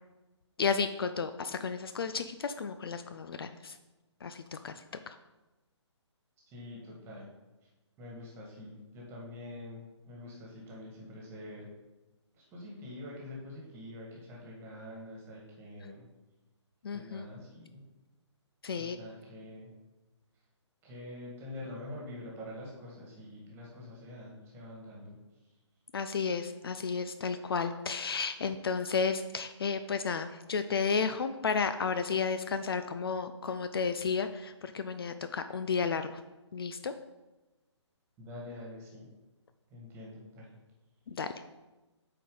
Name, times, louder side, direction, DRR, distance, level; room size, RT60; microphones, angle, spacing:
voice 1, 0.6-3.7 4.2-4.7 5.1-5.2 16.8-17.3 18.6-19.0 25.9-36.1 36.5-36.9 41.1-41.3, left 5 dB, 50° left, 9 dB, 0.4 m, -32 dB
voice 2, 6.5-7.3 8.0-11.7 12.3-16.1 16.9-17.8 18.7-19.7 20.8-25.2 38.2-39.1 39.7-40.5, left 1 dB, 15° right, -3 dB, 1.8 m, -46 dB
8.9 x 4.4 x 3.8 m, 1.1 s
figure-of-eight pair, 135°, 15 cm